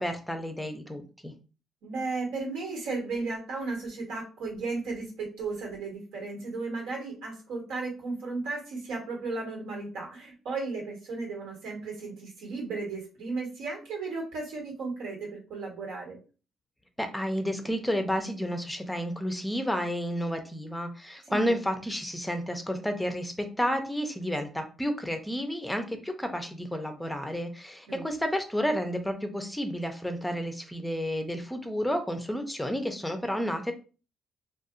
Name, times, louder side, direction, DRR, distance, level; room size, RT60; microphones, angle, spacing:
voice 1, 0.0-1.3 17.0-33.7, equal, 5° left, 6 dB, 0.5 m, -31 dB
voice 2, 1.8-16.2 21.3-21.6 27.9-28.0, right 3 dB, 90° right, -2 dB, 1.3 m, -35 dB
2.6 x 2.3 x 2.5 m, 0.35 s
cardioid pair, 90°, 0 cm